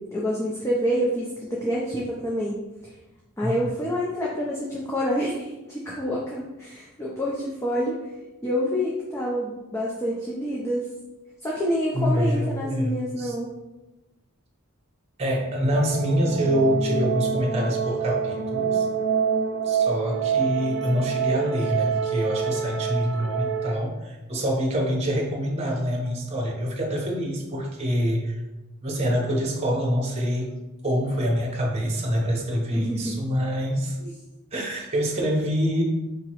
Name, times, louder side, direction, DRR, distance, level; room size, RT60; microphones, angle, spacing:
voice 1, 0.0-2.9 3.4-7.9 8.4-10.9 11.4-13.5 32.7-33.2 34.0-34.1, equal, 15° left, -5 dB, 0.5 m, -27 dB
voice 2, 11.9-13.3 15.2-18.9 19.6-28.4 28.8-30.5 30.8-34.0 34.5-35.8, equal, 30° right, -1 dB, 0.8 m, -25 dB
sound 1, 15.7-23.8, right 6 dB, 55° right, 0.4 m, -26 dB
4.9 x 2.9 x 2.9 m, 1.0 s
head